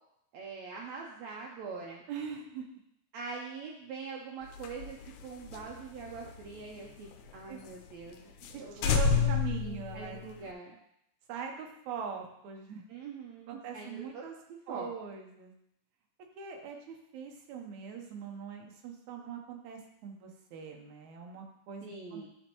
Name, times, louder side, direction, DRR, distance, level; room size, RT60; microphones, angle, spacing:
voice 1, 0.3-2.0 3.1-7.1 7.3-8.3 8.6-8.9 9.5-10.8 12.9-14.2 14.5-14.9 21.8-22.3, right 5 dB, 90° right, -1 dB, 1.6 m, -43 dB
voice 2, 2.1-2.7 7.5-7.6 8.5-10.2 11.3-12.8 13.5-14.3 14.7-15.5 16.4-22.3, right 7 dB, 70° right, 2 dB, 2.0 m, -42 dB
sound 1, 4.5-7.3 7.6-7.7 8.1-8.2 8.4-8.6 8.8-10.5, left 6 dB, 80° left, 1.7 m, -31 dB
11.5 x 4.4 x 3.0 m, 0.77 s
omnidirectional pair, 4.0 m